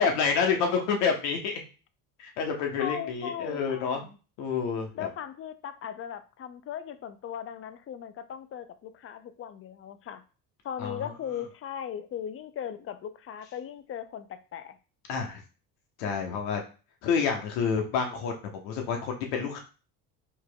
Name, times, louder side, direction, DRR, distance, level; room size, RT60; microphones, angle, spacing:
voice 1, 0.0-1.6 2.2-4.0 4.4-5.1 10.8-11.1 15.1-15.4 16.0-16.6 17.0-19.6, left 6 dB, 75° left, 2 dB, 1.1 m, -28 dB
voice 2, 2.8-4.2 4.9-10.2 10.6-14.8, left 9 dB, 30° left, 12 dB, 0.4 m, -38 dB
4.5 x 2.9 x 2.2 m, 0.35 s
hypercardioid pair, 70°, 48 cm